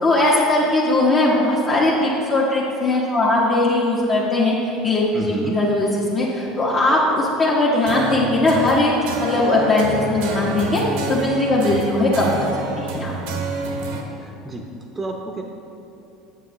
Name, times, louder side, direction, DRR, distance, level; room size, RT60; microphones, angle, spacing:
voice 1, 0.0-10.8 11.1-12.5 12.8-13.1, left 2 dB, 40° left, -7 dB, 1.2 m, -19 dB
voice 2, 5.1-5.6 11.6-11.9 14.1-14.6 14.9-15.4, right 2 dB, 25° right, 1 dB, 0.7 m, -31 dB
sound 1, 7.9-14.0, right 3 dB, 75° right, 0.9 m, -28 dB
7.7 x 7.5 x 3.1 m, 2.8 s
hypercardioid pair, 75°, 0 cm